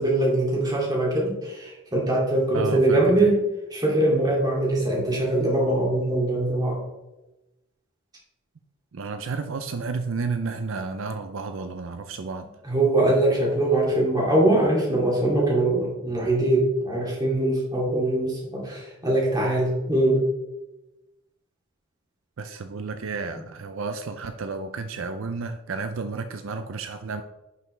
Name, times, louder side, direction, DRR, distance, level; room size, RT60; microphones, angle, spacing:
voice 1, 0.0-3.4 3.7-6.8 12.6-20.3, right 1 dB, 20° right, -3 dB, 2.4 m, -22 dB
voice 2, 2.5-3.3 8.9-12.5 22.4-27.2, right 4 dB, 65° right, 7 dB, 0.5 m, -31 dB
11.0 x 5.5 x 3.2 m, 1.0 s
head